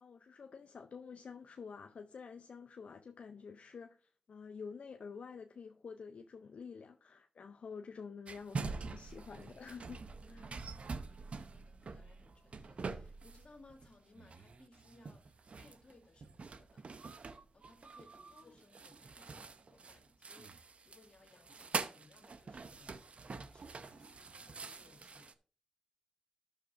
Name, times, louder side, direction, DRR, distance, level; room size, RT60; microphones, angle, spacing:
voice 1, 0.0-10.0 10.3-10.4 18.3-18.4, left 5 dB, 70° left, 0.5 m, -49 dB
sound 1, 8.3-13.9 14.2-25.3, right 4 dB, 60° right, 0.7 m, -45 dB
voice 2, 10.2-16.9 17.5-25.3, left 2 dB, 50° left, 2.1 m, -64 dB
12.0 x 6.5 x 2.5 m
cardioid pair, 45°, 2 cm